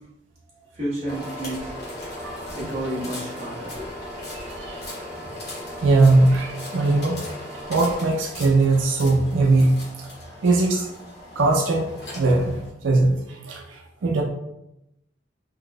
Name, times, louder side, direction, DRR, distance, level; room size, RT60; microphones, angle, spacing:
voice 1, 0.6-1.7 2.5-3.9, right 1 dB, 35° right, -8 dB, 1.2 m, -31 dB
sound 1, 1.0-12.7, left 1 dB, 60° left, 1.1 m, -37 dB
voice 2, 4.3-4.8 5.8-7.2 7.7-9.8 10.4-10.9 11.4-14.2, right 2 dB, 85° right, 0 dB, 0.4 m, -20 dB
3.9 x 2.5 x 2.2 m, 0.86 s
head